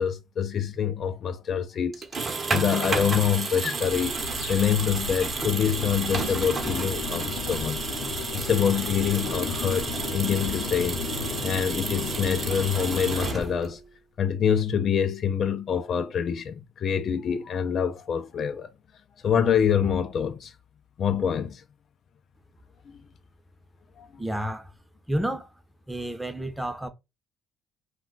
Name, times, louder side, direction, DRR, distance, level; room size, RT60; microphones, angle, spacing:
voice 1, 0.0-4.2 4.5-7.9 8.3-11.0 11.4-13.8 14.2-18.7 19.2-20.5 21.0-21.6 24.0-24.1, left 8 dB, 55° left, 0.3 m, -26 dB
sound 1, 1.9-13.8, right 4 dB, 35° right, 0.8 m, -31 dB
sound 2, 3.8-13.4, left 5 dB, 80° left, 0.6 m, -34 dB
voice 2, 24.2-24.7 25.1-25.5 25.9-26.9, right 1 dB, 5° right, 0.6 m, -30 dB
2.3 x 2.2 x 3.7 m
supercardioid pair, 85°, 0 cm